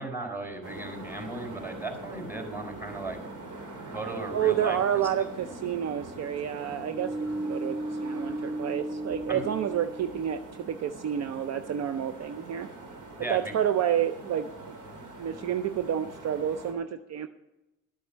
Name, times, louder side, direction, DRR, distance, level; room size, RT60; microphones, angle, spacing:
voice 1, 0.0-3.2 3.9-5.6 9.3-9.4 13.2-13.5, right 2 dB, 5° right, 2 dB, 4.1 m, -37 dB
sound 1, 0.6-16.7, right 2 dB, 85° right, 2.6 m, -44 dB
sound 2, 3.8-10.6, right 1 dB, 10° left, 1.2 m, -38 dB
voice 2, 4.3-12.7 13.3-14.8 15.2-17.3, right 9 dB, 60° right, 9 dB, 0.6 m, -29 dB
11.5 x 7.9 x 7.3 m, 0.98 s
cardioid pair, 90°, 30 cm